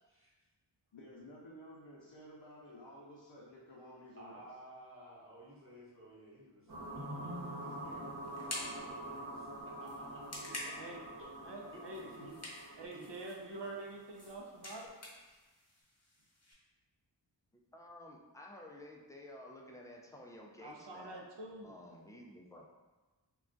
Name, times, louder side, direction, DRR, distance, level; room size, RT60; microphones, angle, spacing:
voice 1, 0.9-4.4 12.0-12.3, equal, 80° left, -5 dB, 0.6 m, -53 dB
voice 2, 4.2-7.1 7.6-10.8 11.2-12.4 12.9-13.1, right 1 dB, 30° right, -6 dB, 0.9 m, -55 dB
sound 1, 6.7-14.3, right 1 dB, 55° right, 1.0 m, -45 dB
sound 2, 7.3-16.5, left 1 dB, 35° left, 0.8 m, -50 dB
voice 3, 11.4-12.0 12.8-14.9 20.6-21.7, right 2 dB, 70° right, 0 dB, 0.6 m, -46 dB
voice 4, 17.7-21.2 21.6-22.7, left 1 dB, 10° left, -1 dB, 0.4 m, -52 dB
2.3 x 2.2 x 3.8 m, 1.2 s
wide cardioid pair, 40°, 44 cm